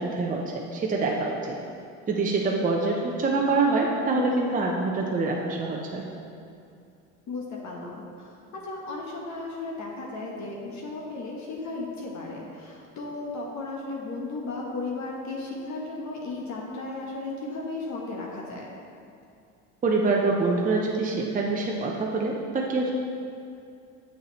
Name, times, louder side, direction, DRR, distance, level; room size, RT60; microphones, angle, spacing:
voice 1, 0.0-1.6 2.1-6.1 19.8-22.9, right 3 dB, 20° right, -1 dB, 0.7 m, -25 dB
voice 2, 7.3-18.6, left 3 dB, 50° left, -2 dB, 1.1 m, -35 dB
6.6 x 6.2 x 3.1 m, 2.5 s
supercardioid pair, 80°, 37 cm